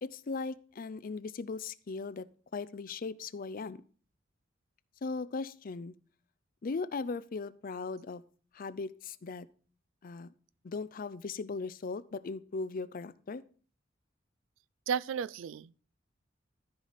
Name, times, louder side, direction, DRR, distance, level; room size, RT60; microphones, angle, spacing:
voice 1, 0.0-2.3 2.5-3.8 5.0-5.9 6.6-8.2 8.5-9.5 10.0-10.3 10.6-13.4, left 4 dB, 50° left, 0.5 m, -38 dB
voice 2, 14.9-15.8, right 7 dB, 80° right, 0.3 m, -33 dB
13.5 x 5.0 x 4.1 m
head